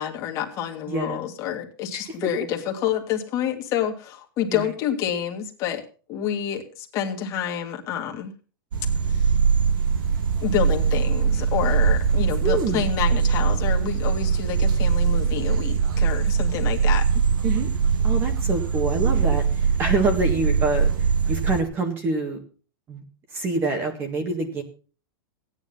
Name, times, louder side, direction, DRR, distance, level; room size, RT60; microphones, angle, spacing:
voice 1, 0.0-5.8 6.1-8.3 9.1-9.4 10.4-17.1, left 9 dB, 25° left, 3 dB, 2.1 m, -28 dB
voice 2, 0.9-1.2 1.9-2.1 4.5-4.7 12.4-12.8 17.4-17.7 18.0-22.4 22.9-23.0 23.3-24.6, right 3 dB, 20° right, 5 dB, 1.8 m, -26 dB
sound 1, 8.7-21.6, right 6 dB, 65° right, 1.8 m, -22 dB
16.5 x 9.8 x 5.5 m, 0.38 s
supercardioid pair, 180°, 12 cm